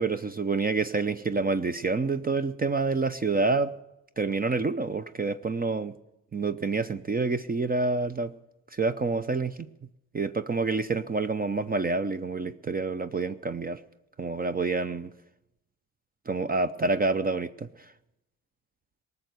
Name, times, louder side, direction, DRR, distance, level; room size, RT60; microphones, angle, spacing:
voice 1, 0.0-3.7 4.2-5.9 6.3-8.3 8.7-9.6 10.1-13.8 14.2-15.1 16.3-17.7, right 3 dB, 25° right, 12 dB, 0.6 m, -27 dB
18.5 x 6.8 x 9.4 m, 0.90 s
supercardioid pair, 60°, 37 cm